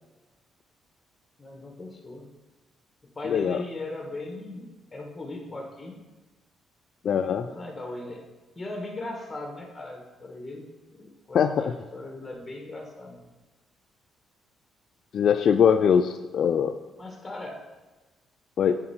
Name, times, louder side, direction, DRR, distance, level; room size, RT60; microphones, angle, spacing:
voice 1, 1.4-2.3 3.0-6.0 7.4-8.2 8.5-13.2 17.0-17.6, left 2 dB, 20° left, 2 dB, 1.6 m, -38 dB
voice 2, 3.3-3.6 7.0-7.5 11.3-11.7 15.1-16.8 18.6-18.8, left 7 dB, 60° left, 8 dB, 0.3 m, -22 dB
8.6 x 4.7 x 4.4 m, 1.2 s
cardioid pair, 90°, 0 cm